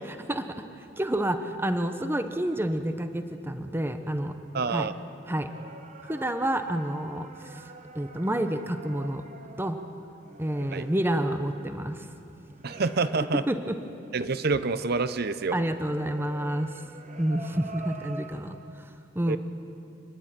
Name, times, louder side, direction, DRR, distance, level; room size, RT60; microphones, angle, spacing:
voice 1, 0.1-0.5 1.0-4.3 4.7-4.9 5.3-5.5 6.0-7.6 7.9-9.2 9.6-9.8 10.4-12.1 13.5-13.8 15.5-16.7 17.2-18.9 19.1-19.4, right 1 dB, 10° right, 8 dB, 0.9 m, -29 dB
voice 2, 4.5-4.9 10.7-10.9 12.6-13.4 14.1-15.6 19.3-19.4, right 4 dB, 55° right, 13 dB, 0.7 m, -27 dB
sound 1, 5.4-14.3 14.7-18.7, right 3 dB, 40° right, 1.1 m, -47 dB
27.5 x 11.0 x 9.1 m, 2.8 s
head